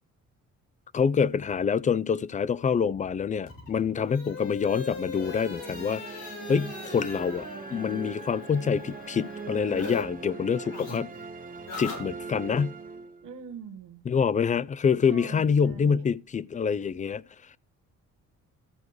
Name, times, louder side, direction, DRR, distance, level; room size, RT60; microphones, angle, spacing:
voice 1, 0.9-11.1 11.8-12.8 14.1-17.2, left 6 dB, 25° left, 0.4 m, -26 dB
sound 1, 3.4-10.0 10.3-12.6, left 4 dB, 80° left, 6.2 m, -41 dB
sound 2, 5.1-13.5, right 4 dB, 30° right, 0.9 m, -41 dB
voice 2, 13.2-14.0 15.1-16.1, right 7 dB, 85° right, 1.2 m, -43 dB
14.0 x 4.7 x 4.7 m
cardioid pair, 90°, 30 cm